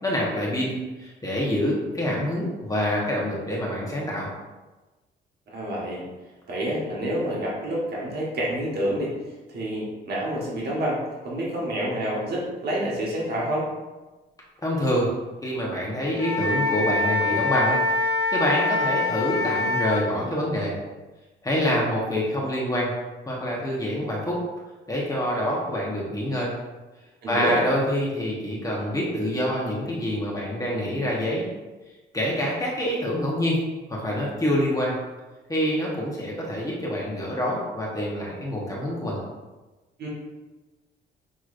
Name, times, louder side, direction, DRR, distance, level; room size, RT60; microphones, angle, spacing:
voice 1, 0.0-4.3 14.6-15.1 15.4-17.8 18.3-20.7 21.4-22.9 23.3-24.4 24.9-26.5 27.3-31.4 32.1-33.6 33.9-34.9 35.5-39.2, equal, 15° left, -4 dB, 1.1 m, -26 dB
voice 2, 5.5-6.1 6.5-9.1 9.5-13.7 27.2-27.6 40.0-40.1, right 1 dB, 55° right, -4 dB, 1.3 m, -28 dB
Wind instrument woodwind instrument, 16.1-20.0, left 2 dB, 60° left, 1.0 m, -24 dB
6.3 x 3.0 x 2.5 m, 1.2 s
cardioid pair, 90°, 20 cm